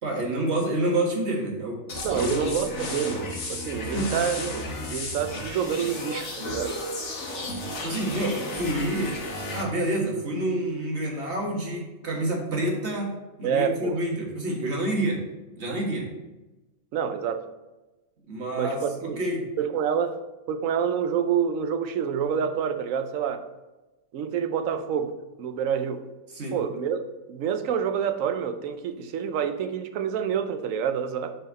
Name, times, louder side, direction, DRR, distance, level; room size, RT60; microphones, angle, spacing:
voice 1, 0.0-1.8 2.1-2.5 3.8-4.2 7.8-9.1 9.5-13.1 13.4-15.2 15.6-16.1 18.3-19.5 26.3-26.6, right 1 dB, 50° right, -1 dB, 1.8 m, -28 dB
sound 1, 1.9-9.6, left 1 dB, 55° left, 1.5 m, -33 dB
voice 2, 2.0-6.8 13.4-14.0 16.9-17.4 18.6-19.2 19.6-20.2 20.5-23.5 24.1-26.0 26.5-27.0 27.3-31.4, right 7 dB, 75° right, 9 dB, 1.0 m, -27 dB
8.0 x 4.4 x 4.1 m, 1.1 s
omnidirectional pair, 1.5 m